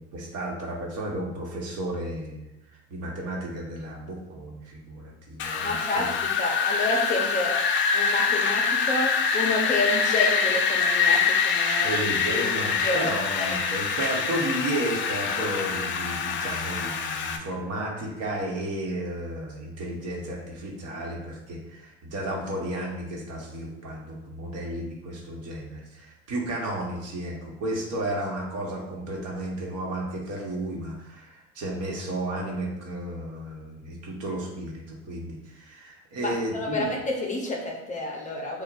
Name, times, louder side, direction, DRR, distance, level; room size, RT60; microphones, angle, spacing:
voice 1, 0.1-2.5 2.9-6.0 11.7-36.9, right 1 dB, 50° right, -1 dB, 1.3 m, -33 dB
Wind, 5.4-17.4, left 5 dB, 40° left, 0.5 m, -25 dB
voice 2, 5.6-7.5 7.9-11.9 12.3-12.5 12.8-13.6 36.2-38.6, left 2 dB, 25° left, -1 dB, 0.9 m, -29 dB
7.0 x 2.5 x 2.6 m, 0.90 s
supercardioid pair, 115°, 32 cm